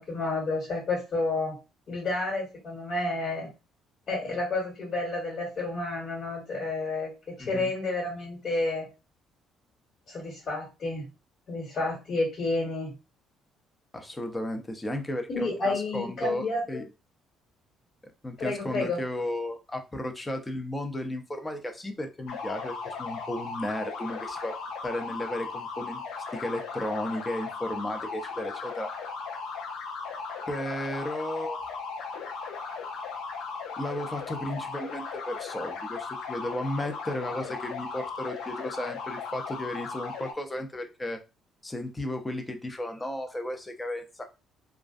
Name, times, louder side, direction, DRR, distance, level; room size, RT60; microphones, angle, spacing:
voice 1, 0.0-1.6 1.9-3.5 4.1-8.9 10.1-11.1 11.5-12.9 15.3-16.8 18.4-19.0, left 2 dB, 50° left, -2 dB, 1.4 m, -30 dB
voice 2, 7.4-7.7 13.9-16.8 18.2-24.6 24.8-26.0 26.3-28.9 30.5-31.6 33.8-41.2 41.6-44.2, left 1 dB, 15° left, 5 dB, 0.6 m, -34 dB
sound 1, 22.3-40.3, left 5 dB, 80° left, 0.5 m, -37 dB
2.3 x 2.2 x 2.5 m, 0.28 s
supercardioid pair, 80°, 0 cm